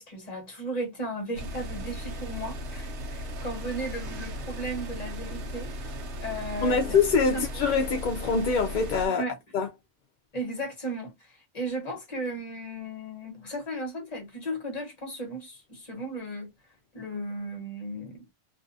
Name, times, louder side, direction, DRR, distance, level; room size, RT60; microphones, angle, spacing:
voice 1, 0.0-5.9 6.2-7.0 7.3-7.5 9.1-9.4 10.3-16.5 16.9-18.3, right 1 dB, 35° left, 1.2 m, -35 dB
sound 1, 1.3-9.1, equal, 75° right, 0.9 m, -37 dB
voice 2, 6.6-9.2 9.5-9.7, left 5 dB, 60° left, 0.5 m, -24 dB
2.6 x 2.4 x 2.5 m
omnidirectional pair, 1.2 m